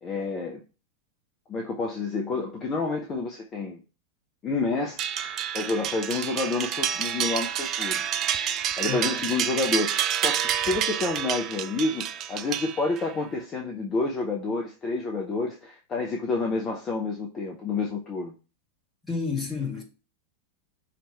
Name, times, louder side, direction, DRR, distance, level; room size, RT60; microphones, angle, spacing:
voice 1, 0.0-0.6 1.5-3.8 4.4-8.0 8.6-18.3, left 3 dB, 25° left, 1.0 m, -29 dB
sound 1, 5.0-13.2, right 9 dB, 35° right, 0.4 m, -29 dB
voice 2, 8.8-9.3 19.0-19.8, left 4 dB, 10° left, 2.0 m, -30 dB
5.8 x 3.2 x 5.4 m
figure-of-eight pair, 90°, 0 cm